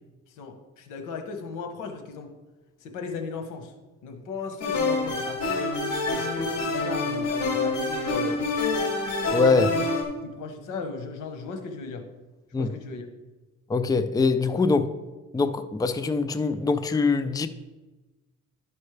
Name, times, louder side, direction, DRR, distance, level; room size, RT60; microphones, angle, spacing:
voice 1, 0.3-2.3 2.8-3.7 4.0-5.6 6.0-8.4 9.5-9.8 10.2-12.1 12.5-13.1, left 4 dB, 90° left, 5 dB, 1.3 m, -36 dB
sound 1, 4.6-10.0, left 3 dB, 65° left, 2.6 m, -27 dB
voice 2, 9.3-9.7 12.5-12.7 13.7-14.9 15.3-17.5, left 4 dB, 10° left, 10 dB, 0.4 m, -23 dB
12.0 x 5.4 x 3.3 m, 1.2 s
cardioid pair, 90°, 30 cm